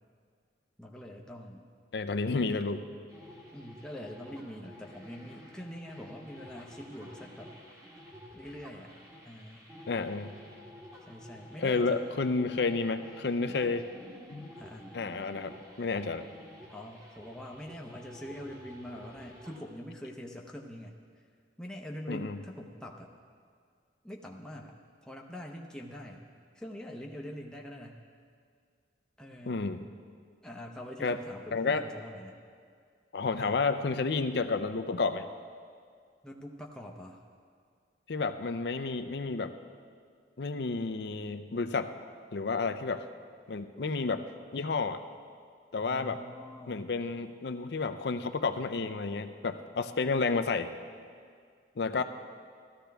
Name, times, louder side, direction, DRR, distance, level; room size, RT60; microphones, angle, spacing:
voice 1, 0.8-1.6 3.5-7.5 8.3-8.9 9.2-9.7 11.1-12.0 14.6-14.9 16.7-21.0 21.6-23.1 24.0-24.8 25.0-26.2 26.5-28.0 29.2-29.7 30.4-32.4 33.4-33.6 36.2-37.2 45.8-46.9 52.0-52.1, equal, 5° left, -1 dB, 0.7 m, -44 dB
voice 2, 1.9-2.9 9.9-10.3 11.6-13.9 14.3-14.5 14.9-16.2 22.1-22.4 29.5-29.9 31.0-31.2 31.5-31.8 33.1-35.3 38.1-39.5 40.4-41.9 42.3-43.0 43.5-44.2 44.5-45.0 45.7-46.2 46.7-50.7 51.8-52.0, left 4 dB, 60° left, 10 dB, 0.5 m, -31 dB
sound 1, 3.1-19.6, equal, 15° right, 1.3 m, -51 dB
15.0 x 13.5 x 3.4 m, 2.1 s
head